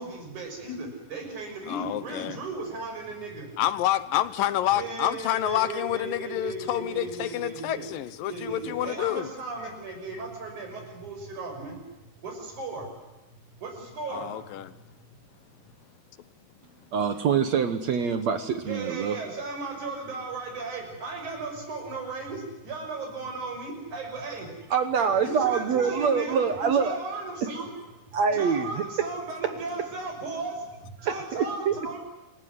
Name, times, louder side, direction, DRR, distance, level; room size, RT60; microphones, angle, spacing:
voice 1, 0.0-3.5 4.7-7.9 8.3-11.8 12.2-12.9 13.6-14.3 18.6-24.5 24.9-27.7 28.3-30.5 31.0-32.0, right 3 dB, 50° right, 3 dB, 7.3 m, -36 dB
voice 2, 1.7-2.4 3.6-9.3 14.1-14.7, left 13 dB, 70° left, 14 dB, 2.4 m, -28 dB
voice 3, 16.9-19.2 24.7-27.0 28.1-28.8 31.0-31.8, right 6 dB, 65° right, 9 dB, 1.8 m, -25 dB
28.5 x 16.0 x 9.6 m, 1.1 s
omnidirectional pair, 4.6 m